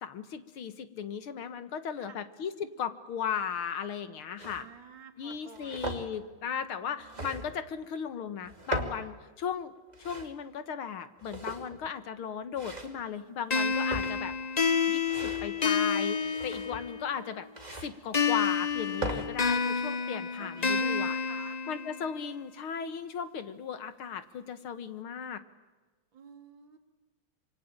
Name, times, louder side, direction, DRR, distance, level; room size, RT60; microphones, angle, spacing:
voice 1, 0.0-4.7 5.2-9.7 10.0-14.3 14.9-17.5 17.8-21.1 21.7-25.4, left 7 dB, 90° left, 11 dB, 2.4 m, -36 dB
sound 1, 4.4-4.6 5.3-6.1 7.0-7.7 8.4-9.1 9.8-10.3 11.2-11.9 12.6-13.0 13.7-14.4 15.0-15.5 16.2-16.9 17.6-17.9 18.7-19.3, right 2 dB, 20° right, 2.8 m, -38 dB
voice 2, 4.5-6.0 6.7-7.3 20.4-21.6 26.1-26.8, right 6 dB, 65° right, 6 dB, 3.2 m, -51 dB
sound 2, 13.5-17.1 18.1-22.2, left 5 dB, 35° left, 0.7 m, -29 dB
26.0 x 24.5 x 8.8 m, 1.2 s
omnidirectional pair, 2.2 m